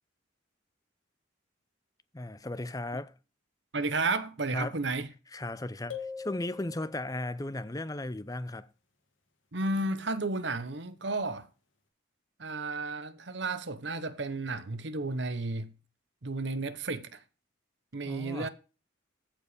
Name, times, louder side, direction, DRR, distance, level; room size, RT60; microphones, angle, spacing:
voice 1, 2.1-3.1 4.5-4.8 5.3-8.7 18.0-18.5, left 2 dB, 20° left, 0.6 m, -36 dB
voice 2, 3.7-5.1 9.5-11.5 12.4-15.7 16.2-17.2 17.9-18.5, right 3 dB, 60° right, 1.1 m, -32 dB
sound 1, 5.9-7.4, left 6 dB, 75° left, 1.9 m, -42 dB
14.5 x 5.0 x 5.1 m
head